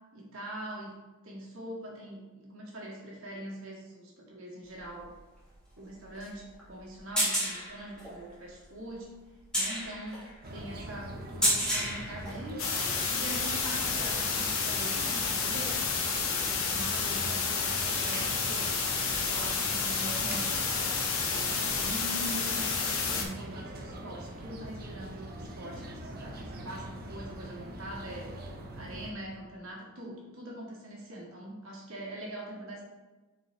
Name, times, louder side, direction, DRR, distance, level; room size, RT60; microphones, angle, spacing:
voice 1, 0.1-1.0 1.2-5.1 5.8-9.1 9.5-12.6 13.1-15.8 16.7-21.1 21.8-32.8, right 1 dB, 70° right, -3 dB, 2.0 m, -43 dB
sound 1, 4.7-13.0 13.4-14.2 15.5-15.6, equal, 5° left, 1.9 m, -33 dB
sound 2, 10.4-29.1, right 1 dB, 45° right, 0.8 m, -42 dB
sound 3, 12.6-23.2, left 5 dB, 65° left, 1.0 m, -30 dB
7.5 x 4.6 x 3.2 m, 1.2 s
head